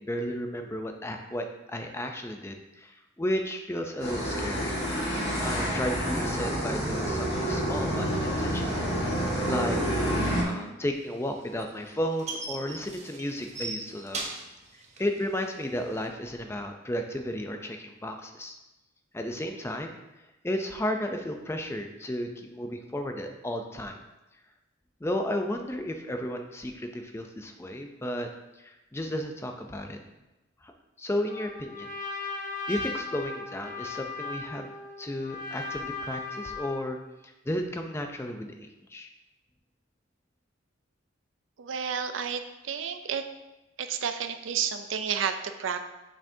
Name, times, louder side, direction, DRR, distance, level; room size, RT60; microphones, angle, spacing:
voice 1, 0.0-4.8 5.4-8.9 9.5-9.8 10.5-14.2 14.7-18.6 19.1-20.0 20.4-24.0 25.0-28.3 28.6-30.0 30.6-30.7 31.0-31.9 32.7-34.7 35.0-37.0 37.2-39.1, left 1 dB, 10° left, 4 dB, 0.5 m, -33 dB
sound 1, 4.0-10.4, equal, 55° left, 1.8 m, -28 dB
sound 2, 11.0-16.1, right 2 dB, 35° right, 0.9 m, -38 dB
Trumpet, 31.3-36.9, left 3 dB, 40° left, 0.8 m, -37 dB
voice 2, 41.6-43.2 43.8-45.9, right 7 dB, 70° right, 8 dB, 0.5 m, -31 dB
6.6 x 6.1 x 2.7 m, 1.0 s
head